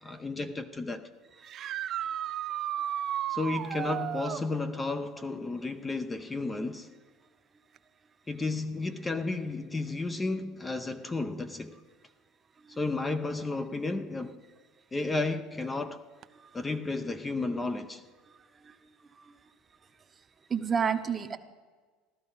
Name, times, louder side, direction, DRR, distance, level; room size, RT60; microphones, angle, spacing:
voice 1, 0.0-1.1 3.3-6.9 8.3-11.8 12.7-14.4 14.9-16.0 16.5-18.0, left 3 dB, 15° left, 0.7 m, -33 dB
voice 2, 1.4-1.8 18.7-18.8 19.2-19.3 20.5-21.4, right 7 dB, 25° right, 0.9 m, -30 dB
sound 1, 1.5-4.5 7.8-7.9 9.9-10.0 16.2-16.3, right 11 dB, 45° right, 0.5 m, -33 dB
15.5 x 12.0 x 5.5 m
supercardioid pair, 115°, 0 cm